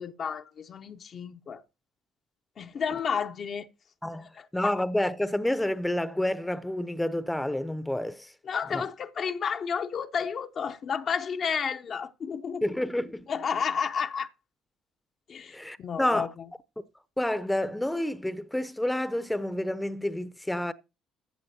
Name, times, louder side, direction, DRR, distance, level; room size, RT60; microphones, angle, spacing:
voice 1, 0.0-1.6 2.6-3.7 4.3-4.7 8.4-12.6 13.3-14.3 15.3-16.5, left 6 dB, 50° left, 0.7 m, -31 dB
voice 2, 4.0-8.3 8.7-8.8 12.6-13.3 15.5-16.3 17.2-20.7, left 1 dB, 10° left, 0.7 m, -29 dB
14.5 x 8.3 x 2.8 m
hypercardioid pair, 50°, 0 cm